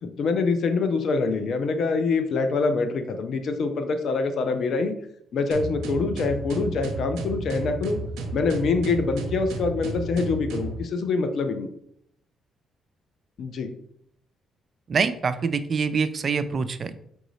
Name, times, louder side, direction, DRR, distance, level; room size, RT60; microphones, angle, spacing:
voice 1, 0.0-4.9 5.3-8.0 8.3-11.7 13.4-13.7, left 4 dB, 65° left, 7 dB, 0.6 m, -25 dB
sound 1, 5.5-10.8, right 2 dB, 85° right, 0.6 m, -33 dB
voice 2, 14.9-17.0, right 5 dB, 45° right, 12 dB, 0.3 m, -25 dB
4.7 x 2.7 x 3.1 m, 0.69 s
cardioid pair, 90°, 0 cm